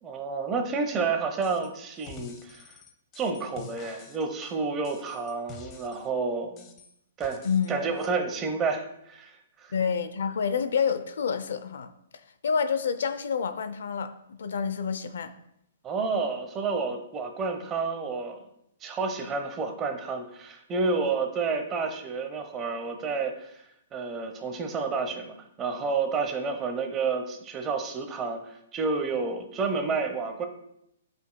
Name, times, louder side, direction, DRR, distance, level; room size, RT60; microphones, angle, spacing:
voice 1, 0.0-2.7 3.2-6.7 7.2-7.4 7.7-9.3 9.6-9.7 15.8-18.4 18.8-23.6 23.9-30.5, right 4 dB, 20° right, 0.8 m, -30 dB
sound 1, 1.4-1.7 2.0-6.1 6.6-7.7 8.0-8.1, left 7 dB, 25° left, 0.7 m, -48 dB
voice 2, 7.4-7.8 9.7-11.9 12.4-15.3, left 6 dB, 80° left, 0.5 m, -28 dB
10.5 x 5.2 x 2.2 m
hypercardioid pair, 155°, 0 cm